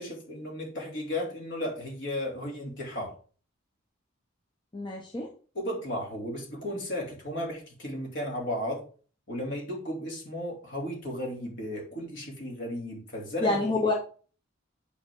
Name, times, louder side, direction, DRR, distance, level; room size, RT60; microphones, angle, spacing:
voice 1, 0.0-3.2 5.5-8.8 9.3-13.6, left 1 dB, 55° left, -1 dB, 3.0 m, -34 dB
voice 2, 4.7-5.3 13.4-13.9, left 2 dB, 20° left, 0 dB, 0.9 m, -27 dB
9.0 x 5.0 x 3.8 m, 0.40 s
head